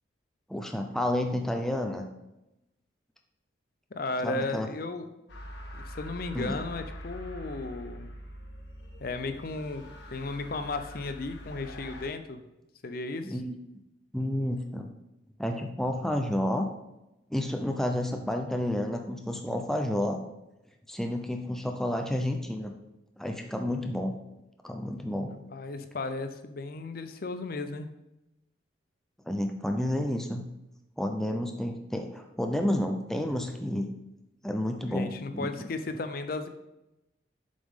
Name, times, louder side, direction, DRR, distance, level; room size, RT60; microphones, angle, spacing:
voice 1, 0.5-2.0 4.2-4.7 6.3-6.6 13.2-13.5 14.1-14.9 15.4-16.7 17.3-20.2 20.9-22.7 23.2-24.2 24.6-25.4 29.3-30.5 31.0-33.9 34.4-35.5, left 1 dB, ahead, 4 dB, 0.5 m, -30 dB
voice 2, 3.9-5.1 5.7-8.2 9.0-12.4 12.8-13.4 25.5-27.9 34.9-36.5, left 3 dB, 50° left, 8 dB, 0.5 m, -35 dB
sound 1, 5.3-12.1, equal, 70° left, 1.2 m, -44 dB
7.4 x 5.2 x 3.6 m, 0.92 s
head